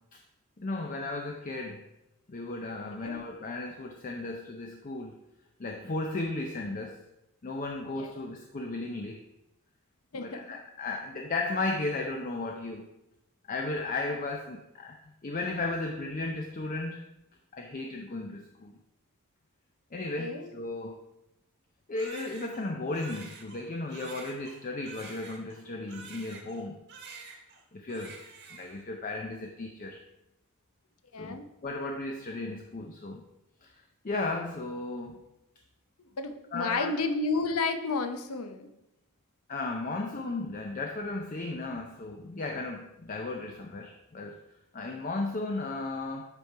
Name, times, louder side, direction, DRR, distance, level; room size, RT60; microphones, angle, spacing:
voice 1, 0.6-1.8 2.3-5.2 5.6-7.0 7.4-9.2 10.2-12.9 13.5-15.0 15.2-17.0 17.5-18.8 19.9-21.0 21.9-26.8 27.7-28.2 28.5-30.0 31.2-33.2 33.6-33.7 34.0-35.2 36.5-36.9 39.5-44.4 44.7-46.3, left 2 dB, 35° left, 2 dB, 0.5 m, -35 dB
voice 2, 10.1-10.6 20.2-20.5 31.1-31.4 36.2-38.7, left 3 dB, 80° left, 8 dB, 0.7 m, -31 dB
Crying sobbing, 21.9-26.6 26.9-27.6 27.9-28.8, right 5 dB, 50° right, 1.4 m, -48 dB
8.2 x 5.1 x 4.5 m, 0.91 s
head